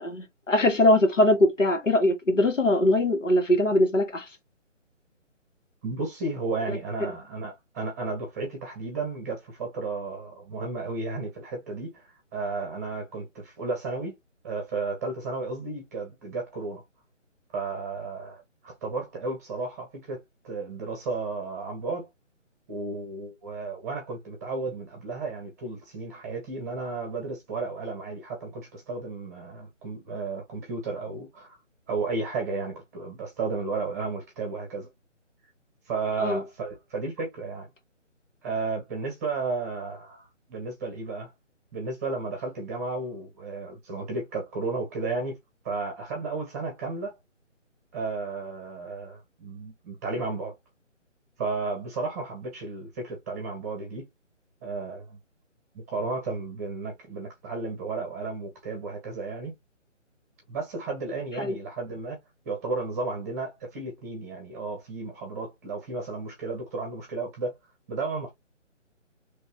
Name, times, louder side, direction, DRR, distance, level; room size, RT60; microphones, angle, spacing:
voice 1, 0.0-4.3 36.2-36.4 61.4-61.5, left 1 dB, 80° left, 1.9 m, -22 dB
voice 2, 5.8-12.0 12.3-14.2 14.4-16.8 17.5-22.1 22.7-31.6 31.9-34.9 35.9-37.7 38.4-41.3 41.7-45.4 45.6-47.1 47.9-50.5 51.4-54.1 54.6-55.2 55.7-59.5 60.5-62.2 62.4-67.5 67.9-68.3, right 3 dB, 15° right, 0.9 m, -33 dB
4.0 x 3.2 x 2.8 m
figure-of-eight pair, 150°, 37 cm